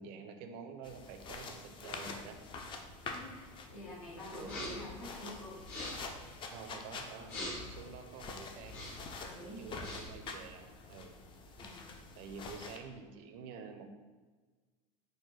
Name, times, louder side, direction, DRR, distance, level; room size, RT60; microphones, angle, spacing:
voice 1, 0.0-2.4 4.3-4.7 6.5-7.3 7.6-8.9 9.4-11.1 12.2-13.9, right 5 dB, 55° right, 6 dB, 0.4 m, -49 dB
sound 1, 0.8-12.8, left 3 dB, 30° left, 0.4 m, -47 dB
voice 2, 3.1-5.6 9.2-9.8 11.6-12.0, left 1 dB, 85° left, -4 dB, 1.1 m, -48 dB
sound 2, 4.4-4.9 5.6-6.1 7.2-7.8 8.6-9.1 9.6-10.2, left 1 dB, 60° left, 1.2 m, -43 dB
3.8 x 2.1 x 3.1 m, 1.4 s
hypercardioid pair, 95°, 17 cm